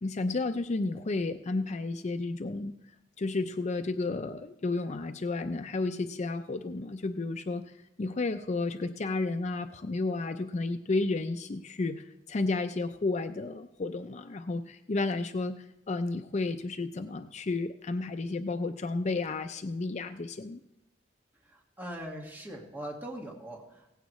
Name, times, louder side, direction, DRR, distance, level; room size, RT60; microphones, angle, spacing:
voice 1, 0.0-2.7 3.2-20.6, left 3 dB, 40° left, 8 dB, 0.5 m, -32 dB
voice 2, 21.4-23.9, right 1 dB, 10° right, -1 dB, 1.7 m, -41 dB
17.0 x 15.5 x 3.1 m, 0.90 s
head